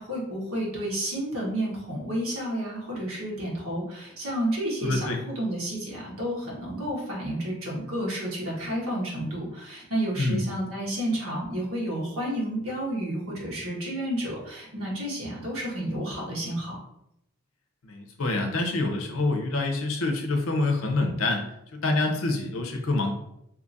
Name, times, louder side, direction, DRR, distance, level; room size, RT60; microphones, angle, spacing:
voice 1, 0.0-5.1 5.4-16.8, right 1 dB, 80° right, -4 dB, 1.2 m, -31 dB
voice 2, 4.8-5.2 10.2-10.4 17.8-23.1, left 2 dB, 75° left, 3 dB, 0.7 m, -26 dB
2.8 x 2.5 x 3.9 m, 0.80 s
head